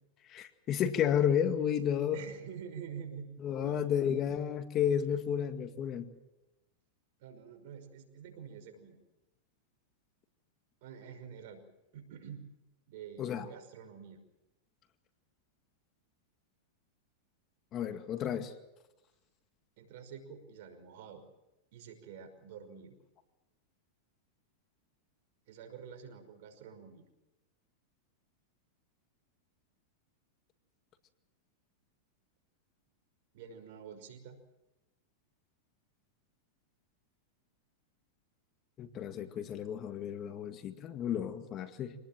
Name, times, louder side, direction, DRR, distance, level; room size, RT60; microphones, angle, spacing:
voice 1, 0.3-2.2 3.4-6.1 13.2-13.5 17.7-18.5 38.8-41.9, left 9 dB, 35° left, 9 dB, 2.1 m, -32 dB
voice 2, 2.1-3.3 3.6-3.9 7.2-9.0 10.8-11.6 11.9-12.5 12.9-14.2 19.8-21.2 21.7-23.0 25.5-27.1 33.3-34.4, right 7 dB, 60° right, 6 dB, 5.6 m, -47 dB
26.0 x 19.0 x 7.6 m, 0.99 s
hypercardioid pair, 125°, 0 cm